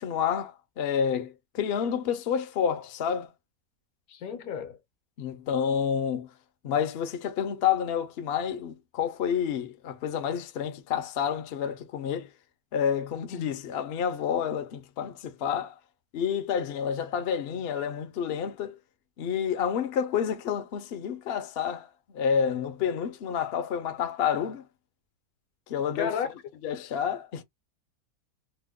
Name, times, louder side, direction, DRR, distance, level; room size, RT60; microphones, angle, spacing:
voice 1, 0.0-3.3 5.2-6.3 6.6-12.3 12.7-15.8 16.1-18.8 19.2-21.9 22.1-24.6 25.7-26.1 26.6-27.4, left 8 dB, 60° left, 0.7 m, -29 dB
voice 2, 4.1-4.8 13.3-13.5 25.9-26.3, left 7 dB, 75° left, 1.2 m, -32 dB
2.9 x 2.1 x 3.5 m
omnidirectional pair, 1.6 m